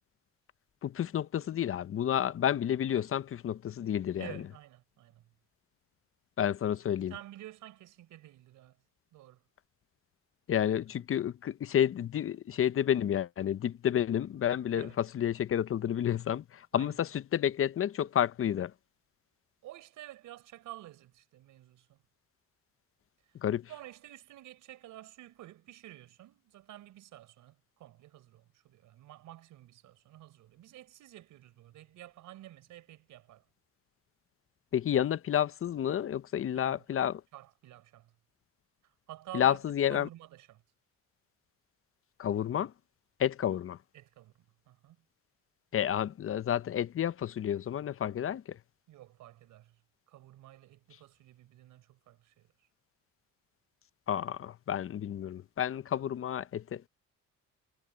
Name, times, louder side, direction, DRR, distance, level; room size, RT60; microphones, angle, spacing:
voice 1, 0.8-4.3 6.4-7.1 10.5-18.7 23.4-23.7 34.7-37.2 39.3-40.1 42.2-42.7 43.2-43.8 45.7-48.6 54.1-56.9, left 10 dB, 45° left, 0.6 m, -30 dB
voice 2, 4.2-5.3 7.1-8.8 9.1-9.4 14.7-15.0 16.7-17.0 19.6-22.0 23.3-23.4 23.7-33.4 36.5-36.8 37.3-38.1 38.8-39.6 39.9-40.6 43.9-44.3 44.7-45.0 48.9-49.8 50.1-52.7, right 14 dB, 85° right, 4.8 m, -50 dB
cardioid pair, 90°, 30 cm